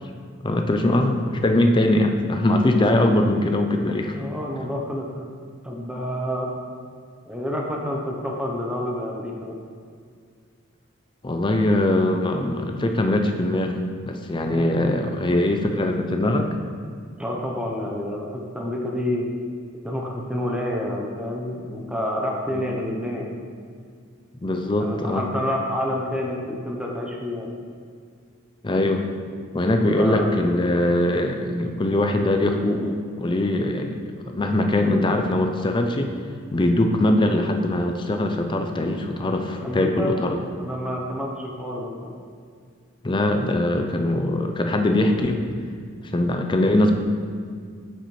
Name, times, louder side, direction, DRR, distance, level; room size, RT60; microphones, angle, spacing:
voice 1, 0.4-4.1 11.2-13.7 14.0-16.5 22.5-22.6 24.4-25.3 28.6-29.1 29.5-36.1 36.5-40.4 43.0-45.4 46.1-46.9, left 1 dB, 25° left, 4 dB, 0.5 m, -22 dB
voice 2, 4.2-5.3 5.6-6.5 7.3-9.6 14.5-14.7 17.2-19.3 19.8-23.3 24.8-27.5 29.9-30.3 39.6-40.1 40.6-42.1, left 1 dB, 5° right, -1 dB, 0.8 m, -28 dB
7.7 x 6.7 x 3.2 m, 2.1 s
head